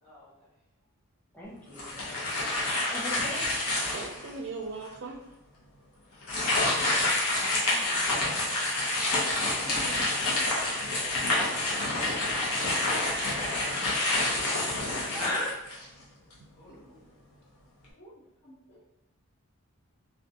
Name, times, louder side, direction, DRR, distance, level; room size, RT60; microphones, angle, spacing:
voice 1, 1.3-2.3 2.9-3.4 15.1-15.6, left 1 dB, 10° left, -8 dB, 0.7 m, -36 dB
sound 1, 1.7-4.3 4.9-5.0 6.2-16.0, left 2 dB, 85° left, 0.8 m, -28 dB
voice 2, 3.9-5.2, right 3 dB, 55° right, 1 dB, 0.4 m, -38 dB
voice 3, 7.3-8.5 9.6-10.0 18.0-18.1 18.4-18.8, equal, 55° left, -4 dB, 0.6 m, -46 dB
voice 4, 9.0-9.8 10.1-10.2 11.1-14.5 16.6-17.2, left 1 dB, 35° left, -9 dB, 1.3 m, -48 dB
2.5 x 2.3 x 2.6 m, 0.87 s
head